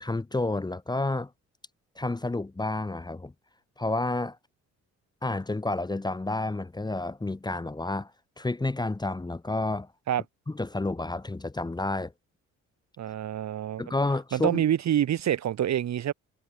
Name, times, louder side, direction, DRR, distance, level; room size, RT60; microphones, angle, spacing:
voice 1, 0.0-1.3 2.0-3.3 3.8-4.4 5.2-8.1 8.4-9.9 10.5-12.1 13.8-14.6, left 2 dB, 15° left, 1.2 m, -30 dB
voice 2, 13.0-13.8 14.3-16.1, right 10 dB, 65° right, 2.2 m, -26 dB
cardioid pair, 90°, 30 cm